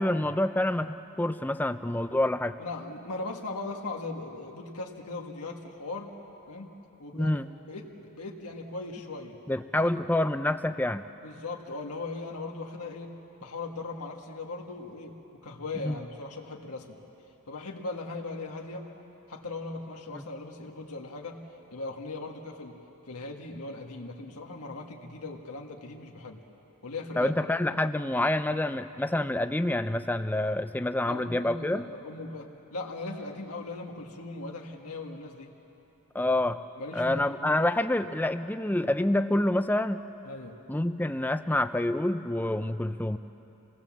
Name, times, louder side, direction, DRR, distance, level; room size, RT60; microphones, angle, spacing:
voice 1, 0.0-2.6 7.1-7.5 9.5-11.0 15.8-16.0 20.1-20.2 27.2-31.9 36.1-36.6 36.9-40.0 40.7-43.2, left 1 dB, 10° left, 10 dB, 0.5 m, -27 dB
voice 2, 2.6-6.1 6.5-6.7 7.0-7.4 7.7-9.4 9.8-9.9 11.2-13.1 13.4-15.2 15.4-17.0 17.5-18.9 19.3-21.4 21.7-22.8 23.1-26.4 26.8-27.4 31.1-35.5 36.8-37.6 40.2-40.6, left 3 dB, 90° left, 1 dB, 1.8 m, -39 dB
27.0 x 19.0 x 7.4 m, 3.0 s
head